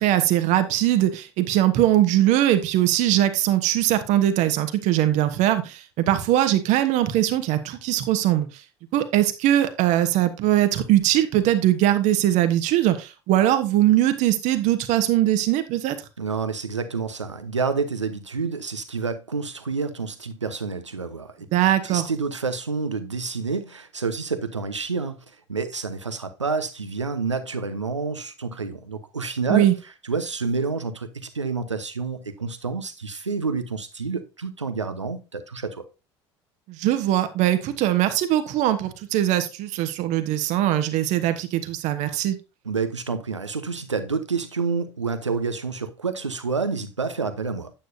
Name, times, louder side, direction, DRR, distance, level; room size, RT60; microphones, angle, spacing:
voice 1, 0.0-8.5 8.9-15.9 21.5-22.0 29.5-29.7 36.7-42.4, right 13 dB, 55° right, 1.2 m, -21 dB
voice 2, 16.2-21.5 21.8-35.8 42.6-47.7, right 4 dB, 85° right, 0.9 m, -28 dB
9.2 x 8.8 x 2.7 m
figure-of-eight pair, 60°, 15 cm